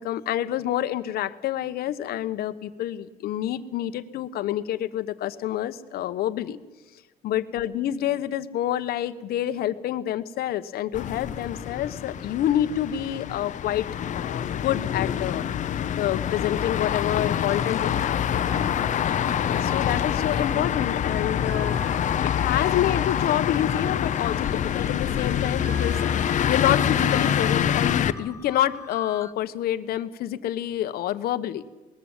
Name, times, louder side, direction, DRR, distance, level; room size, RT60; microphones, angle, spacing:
voice 1, 0.0-6.6 7.2-13.9 14.1-15.4 16.0-18.4 19.5-21.8 22.2-26.0 26.3-31.6, left 12 dB, 65° left, 12 dB, 1.1 m, -28 dB
sound 1, 10.9-28.1, left 9 dB, 45° left, 0.9 m, -26 dB
sound 2, 17.5-18.0 18.5-29.3, left 2 dB, 15° left, 1.1 m, -42 dB
20.5 x 14.5 x 9.0 m, 1.2 s
cardioid pair, 100°, 17 cm